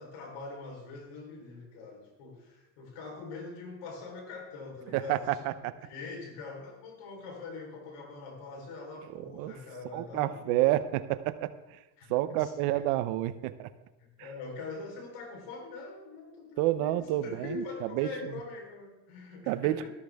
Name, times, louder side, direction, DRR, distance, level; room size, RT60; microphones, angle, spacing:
voice 1, 0.0-5.5 5.8-10.6 12.0-12.5 14.0-19.9, left 3 dB, 85° left, 2 dB, 4.2 m, -43 dB
voice 2, 4.9-5.8 9.1-9.5 9.9-11.8 12.1-13.7 16.6-18.4 19.5-19.9, right 15 dB, 85° right, 13 dB, 0.9 m, -29 dB
13.5 x 13.0 x 3.6 m, 1.1 s
supercardioid pair, 100°, 50 cm